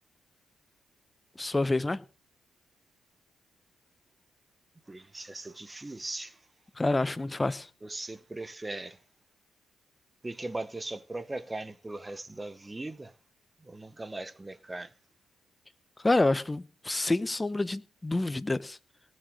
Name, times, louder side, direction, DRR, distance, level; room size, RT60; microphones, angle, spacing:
voice 1, 1.4-2.0 6.8-7.7 16.0-18.8, left 2 dB, 20° left, 0.9 m, -28 dB
voice 2, 4.9-6.5 7.8-9.0 10.2-13.2 13.6-14.9, right 2 dB, 20° right, 1.0 m, -39 dB
18.5 x 6.5 x 6.5 m
cardioid pair, 65°, 0 cm